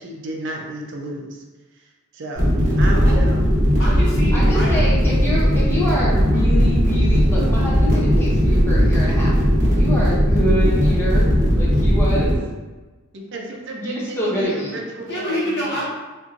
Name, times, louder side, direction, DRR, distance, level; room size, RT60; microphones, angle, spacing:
voice 1, 0.0-1.4 2.1-2.5 2.8-3.4 13.1-15.7, right 1 dB, 55° right, 0 dB, 0.5 m, -32 dB
sound 1, 2.4-12.3, equal, 35° right, 1.1 m, -17 dB
voice 2, 3.6-4.8 15.0-15.9, equal, 50° left, -6 dB, 1.1 m, -27 dB
voice 3, 4.3-9.3 9.6-11.3 11.6-12.3 13.7-14.8, equal, 10° left, -7 dB, 0.5 m, -26 dB
4.2 x 2.5 x 2.5 m, 1.2 s
head